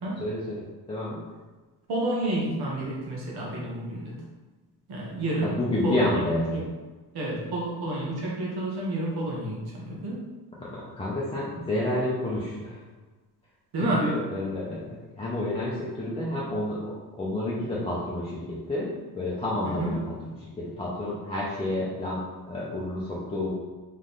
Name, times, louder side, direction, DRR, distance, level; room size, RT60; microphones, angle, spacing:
voice 1, 0.2-1.2 5.4-6.6 10.6-12.8 13.8-23.5, left 1 dB, 15° left, -7 dB, 0.5 m, -30 dB
voice 2, 1.9-4.2 4.9-5.6 5.8-6.2 6.5-6.6 7.1-10.2 13.7-14.1 19.6-20.0, right 1 dB, 65° right, -4 dB, 1.1 m, -30 dB
3.7 x 3.2 x 3.9 m, 1.3 s
wide cardioid pair, 170°, 42 cm